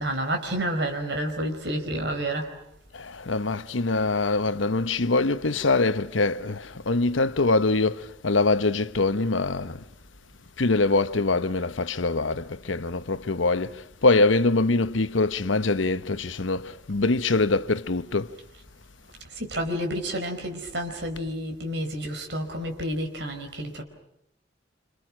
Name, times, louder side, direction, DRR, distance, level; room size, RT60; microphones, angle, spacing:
voice 1, 0.0-2.5 19.3-23.8, right 1 dB, 65° right, 4.7 m, -30 dB
voice 2, 2.9-9.8 10.6-18.3, left 3 dB, 90° left, 1.0 m, -24 dB
28.0 x 27.5 x 6.2 m
head